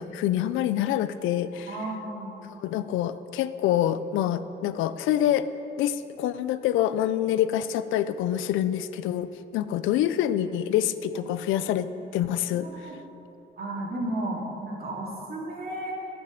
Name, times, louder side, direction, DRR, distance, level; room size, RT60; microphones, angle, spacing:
voice 1, 0.0-1.7 2.6-5.5 5.8-11.9 12.1-12.9, left 11 dB, 90° left, 14 dB, 0.4 m, -26 dB
voice 2, 1.7-2.3 11.1-11.2 12.5-12.9 13.6-15.9, right 1 dB, 50° right, -3 dB, 2.4 m, -33 dB
9.4 x 9.2 x 5.1 m, 3.0 s
cardioid pair, 90°, 20 cm